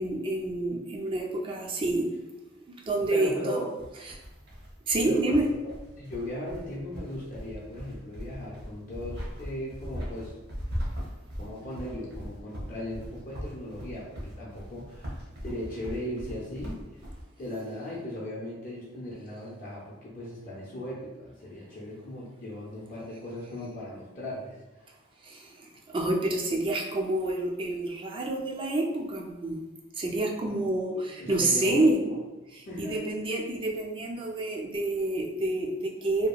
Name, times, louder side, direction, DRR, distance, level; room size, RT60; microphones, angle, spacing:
voice 1, 0.0-2.1 2.7-3.6 4.1-4.2 4.9-5.4 25.2-29.6 30.0-32.0 32.8-36.3, right 2 dB, 25° right, 0 dB, 0.3 m, -28 dB
voice 2, 3.1-3.7 5.0-5.4 5.9-10.3 11.3-17.0 17.4-24.9 30.6-30.7 30.9-32.2 32.7-33.1, left 1 dB, 45° left, -6 dB, 0.5 m, -38 dB
sound 1, 3.8-17.2, equal, 55° right, 0.7 m, -40 dB
2.8 x 2.1 x 2.3 m, 1.1 s
head